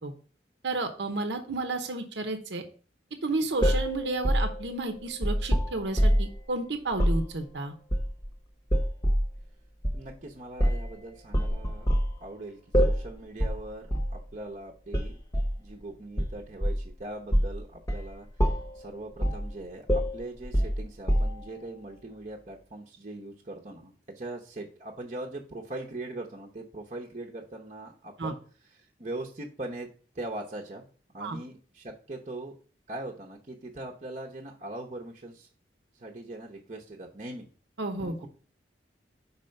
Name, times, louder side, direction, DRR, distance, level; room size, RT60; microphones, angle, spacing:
voice 1, 0.6-2.6 3.2-7.7 28.2-28.3 31.2-31.4 37.8-38.1, right 2 dB, 80° right, 6 dB, 0.9 m, -32 dB
sound 1, 3.6-6.4 6.9-7.2 7.9-8.3 8.7-9.3 9.8-10.0 10.6-10.9 11.3-12.1 12.7-13.1 13.4-13.6 13.9-14.1 14.9-15.6 16.2-16.9 17.3-17.6 17.9-18.1 18.4-18.8 19.2-19.5 19.9-21.6, equal, 20° left, 1.0 m, -25 dB
voice 2, 9.9-11.9 12.2-15.1 15.6-18.3 18.7-28.4 28.7-29.9 30.1-30.8 31.1-32.5 32.9-35.5 35.9-37.5 38.0-38.3, right 2 dB, 40° right, -1 dB, 0.9 m, -41 dB
5.7 x 4.2 x 5.3 m, 0.40 s
head